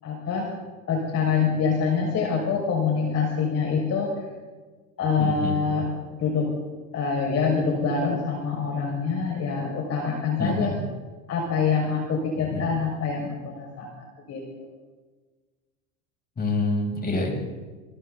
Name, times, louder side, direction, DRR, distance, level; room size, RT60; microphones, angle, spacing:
voice 1, 0.0-0.5 0.9-4.1 5.0-5.8 6.1-6.5 6.9-10.8 11.3-13.9 14.3-14.4, left 5 dB, 40° left, -1 dB, 6.0 m, -25 dB
voice 2, 5.2-5.6 10.4-10.8 12.4-12.8 16.4-17.3, left 2 dB, 25° left, 0 dB, 7.9 m, -27 dB
28.5 x 28.0 x 4.1 m, 1.3 s
figure-of-eight pair, 75°, 40 cm